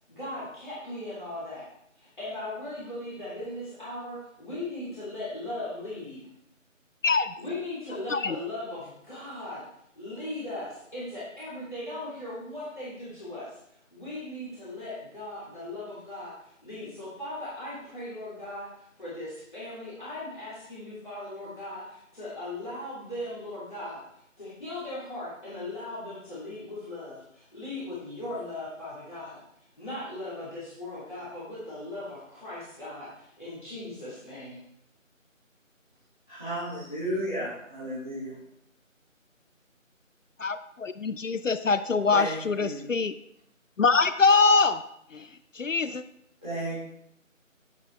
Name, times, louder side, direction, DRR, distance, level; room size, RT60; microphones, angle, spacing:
voice 1, 0.1-1.7 1.9-6.2 7.4-9.6 9.9-13.6 13.9-24.0 24.4-34.6, left 1 dB, 35° left, -11 dB, 2.8 m, -38 dB
voice 2, 7.0-7.3 8.1-8.4 40.4-43.1 43.8-44.8 45.1-45.3 45.5-46.0, left 4 dB, 70° left, 13 dB, 0.5 m, -24 dB
voice 3, 36.3-38.4 42.1-42.9 46.4-46.8, right 1 dB, 10° left, -21 dB, 2.0 m, -33 dB
8.3 x 7.9 x 3.2 m, 0.75 s
figure-of-eight pair, 170°, 40 cm